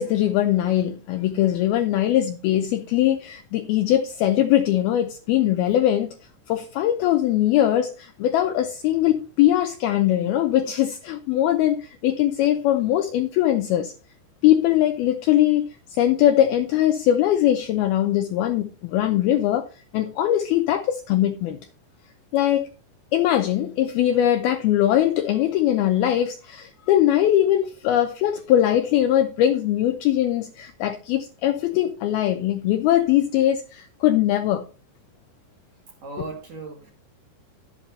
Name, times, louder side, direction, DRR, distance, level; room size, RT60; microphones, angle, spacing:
voice 1, 0.0-6.1 6.5-13.9 14.4-19.7 19.9-21.6 22.3-22.7 23.1-34.7, left 12 dB, 80° left, 2.2 m, -21 dB
voice 2, 36.0-36.9, right 3 dB, 50° right, 2.9 m, -37 dB
11.5 x 8.2 x 4.1 m
omnidirectional pair, 5.2 m